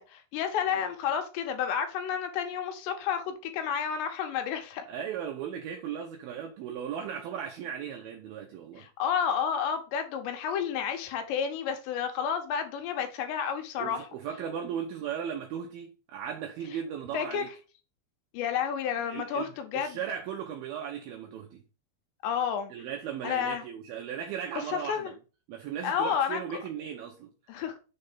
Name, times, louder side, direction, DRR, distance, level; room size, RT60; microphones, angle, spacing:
voice 1, 0.0-4.9 8.8-14.1 17.1-17.4 18.3-20.0 22.2-22.7 23.2-23.7 24.7-25.1 25.8-26.4 27.5-27.8, left 7 dB, 75° left, 3.0 m, -31 dB
voice 2, 4.9-8.9 13.8-17.5 19.1-19.5 19.7-21.6 22.7-25.1 25.5-27.3, right 8 dB, 80° right, 2.1 m, -37 dB
6.7 x 4.0 x 5.4 m
omnidirectional pair, 5.4 m